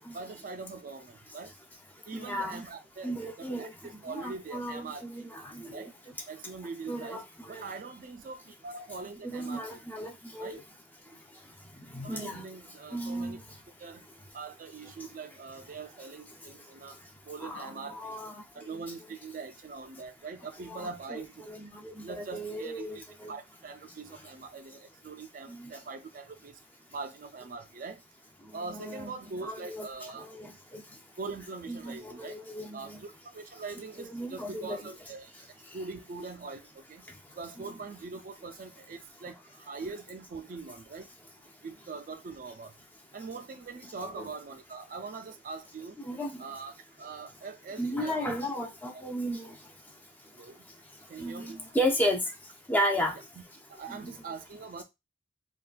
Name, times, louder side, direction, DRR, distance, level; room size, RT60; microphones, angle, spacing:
voice 1, 0.1-1.5 2.1-3.1 3.4-5.1 5.7-5.9 6.3-10.0 10.4-10.6 12.0-13.4 13.8-14.0 14.3-18.2 18.5-21.5 22.0-26.6 26.9-28.0 28.5-30.3 31.2-32.4 32.7-35.5 35.7-37.0 37.4-41.1 41.6-42.7 43.1-46.0 46.4-48.5 48.9-49.0 50.3-50.6 51.1-51.6 53.4-53.5 53.7-54.8, right 4 dB, 45° right, 0.3 m, -42 dB
voice 2, 2.1-2.6 3.0-5.9 6.9-7.6 9.2-10.6 11.7-12.5 12.9-13.6 15.0-15.1 17.4-18.3 18.6-18.8 20.7-21.2 21.5-23.3 24.1-24.3 25.5-25.7 28.4-29.1 29.4-29.9 30.2-31.0 31.7-33.0 34.0-34.9 35.7-35.8 37.1-37.2 44.1-44.3 46.0-46.4 47.8-49.7 51.2-52.3 52.7-53.3 53.9-54.1, equal, 10° left, 0.5 m, -35 dB
3.6 x 2.3 x 2.4 m
head